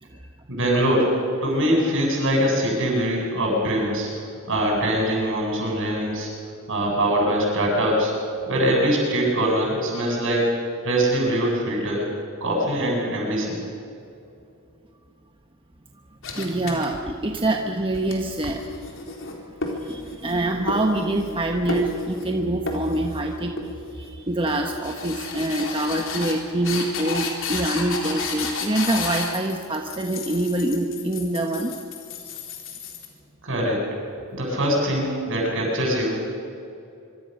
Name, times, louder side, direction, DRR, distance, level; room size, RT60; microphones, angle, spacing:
voice 1, 0.5-1.1 1.4-4.1 4.5-6.3 6.7-8.1 8.5-10.5 10.8-12.1 12.4-13.6 33.4-33.8 34.3-36.4, equal, 60° right, -1 dB, 7.9 m, -22 dB
sound 1, 16.2-17.4 17.8-20.4 20.7-21.4 21.7-22.3 22.7-23.2 23.6-24.1 24.5-33.1, left 3 dB, 60° left, 4.1 m, -32 dB
voice 2, 16.3-18.7 19.8-23.5 23.9-31.7, right 1 dB, 25° right, 3 dB, 1.2 m, -25 dB
25.0 x 24.5 x 6.7 m, 2.7 s
head